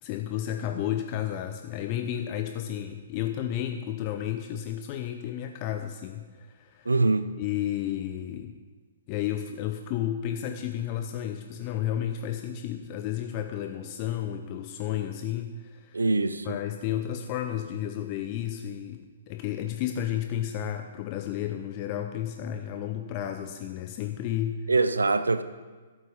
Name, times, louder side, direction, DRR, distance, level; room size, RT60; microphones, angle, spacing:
voice 1, 0.0-6.9 7.4-8.6 9.1-16.0 16.4-24.6, left 11 dB, 35° left, 6 dB, 0.8 m, -32 dB
voice 2, 6.9-7.2 15.9-16.6 24.7-25.4, right 3 dB, 80° right, 12 dB, 0.7 m, -23 dB
12.0 x 8.3 x 6.9 m, 1.4 s
figure-of-eight pair, 120°, 0 cm